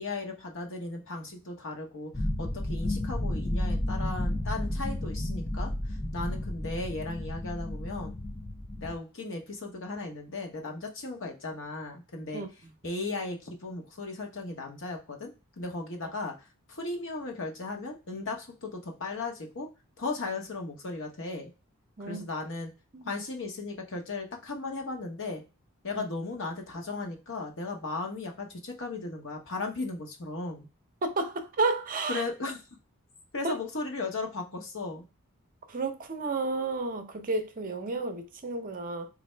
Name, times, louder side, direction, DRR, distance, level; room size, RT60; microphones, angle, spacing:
voice 1, 0.0-8.2 8.8-12.4 12.8-19.7 20.0-21.5 22.0-22.7 23.0-25.4 25.8-30.7 32.1-32.6 33.3-35.0, left 3 dB, 60° left, 1.0 m, -36 dB
sound 1, 2.1-9.0, left 1 dB, 10° left, 0.3 m, -32 dB
voice 2, 31.0-32.2 33.4-33.6 35.7-39.1, right 3 dB, 40° right, 0.6 m, -31 dB
4.1 x 2.5 x 3.2 m
head